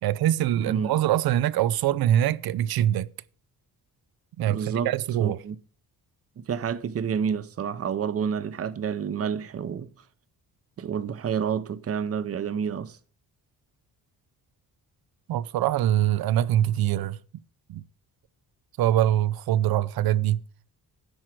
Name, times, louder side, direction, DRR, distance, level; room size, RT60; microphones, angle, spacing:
voice 1, 0.0-3.1 4.4-5.4 15.3-17.2 17.7-17.8 18.8-20.4, right 12 dB, 80° right, 0.6 m, -23 dB
voice 2, 0.6-0.9 4.4-4.9 5.2-5.6 6.4-9.9 10.8-13.0, right 7 dB, 40° right, 0.7 m, -29 dB
10.5 x 4.6 x 7.6 m
cardioid pair, 135°, 36 cm